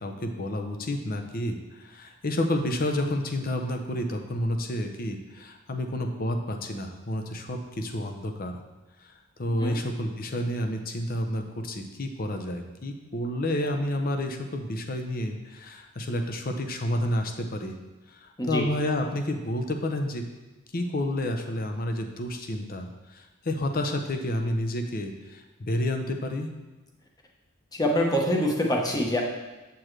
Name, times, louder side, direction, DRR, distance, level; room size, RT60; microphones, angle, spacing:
voice 1, 0.0-8.6 9.4-17.8 18.1-20.2 20.7-26.5, left 1 dB, 45° left, 5 dB, 0.7 m, -30 dB
voice 2, 27.7-29.2, equal, 20° left, 0 dB, 1.0 m, -25 dB
7.5 x 7.0 x 3.2 m, 1.2 s
head